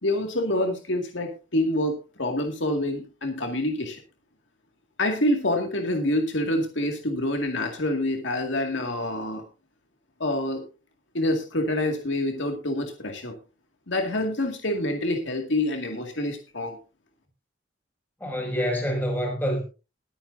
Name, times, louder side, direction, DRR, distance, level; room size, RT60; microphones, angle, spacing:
voice 1, 0.0-4.0 5.0-9.4 10.2-10.6 11.1-13.4 13.9-16.8, left 1 dB, 75° left, 2.1 m, -27 dB
voice 2, 18.2-19.6, equal, 10° left, 6.0 m, -26 dB
21.5 x 9.1 x 2.7 m
head